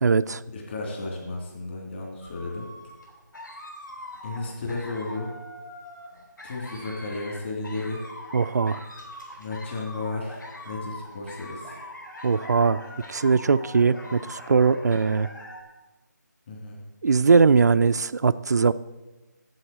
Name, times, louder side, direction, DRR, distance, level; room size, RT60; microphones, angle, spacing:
voice 1, 0.0-0.4 8.3-8.8 12.2-12.8 13.1-15.3 17.0-18.7, right 5 dB, 60° right, 12 dB, 0.4 m, -20 dB
voice 2, 0.5-2.7 4.2-5.3 6.4-8.0 9.4-11.8 16.5-16.8, left 3 dB, 35° left, -1 dB, 3.1 m, -33 dB
sound 1, 2.2-15.6, left 1 dB, 80° left, 3.5 m, -42 dB
8.0 x 7.6 x 8.6 m, 1.1 s
figure-of-eight pair, 165°, 10 cm